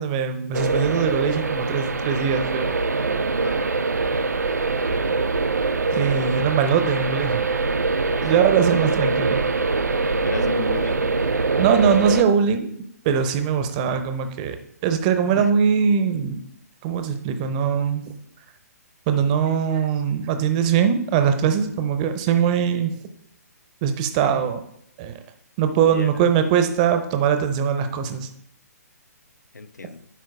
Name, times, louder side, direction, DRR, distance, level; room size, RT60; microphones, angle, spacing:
voice 1, 0.0-2.7 5.9-7.5 8.2-9.4 11.6-12.7 13.0-14.6 14.8-16.4 16.8-18.1 19.1-22.9 23.8-24.6 25.0-25.1 25.6-28.3, right 7 dB, 25° right, 8 dB, 0.6 m, -21 dB
sound 1, 0.5-12.2, right 3 dB, 80° right, 0.4 m, -23 dB
voice 2, 10.2-11.0 15.4-15.5 25.9-26.1 29.5-30.1, left 4 dB, 80° left, 14 dB, 0.4 m, -33 dB
10.0 x 4.4 x 2.3 m, 0.71 s
figure-of-eight pair, 130°, 9 cm